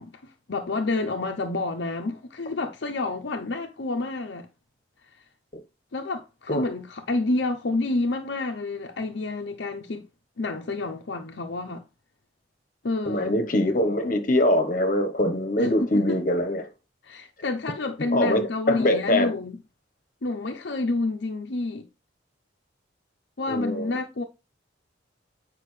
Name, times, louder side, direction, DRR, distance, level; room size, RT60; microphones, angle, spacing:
voice 1, 0.0-4.5 5.9-10.1 10.4-11.8 12.8-13.3 15.6-16.2 17.0-19.6 20.2-21.9 23.4-24.2, left 2 dB, 65° left, 0.7 m, -29 dB
voice 2, 13.1-16.7 18.1-19.3 23.5-23.9, left 1 dB, 45° left, 1.1 m, -23 dB
8.6 x 5.0 x 3.2 m
head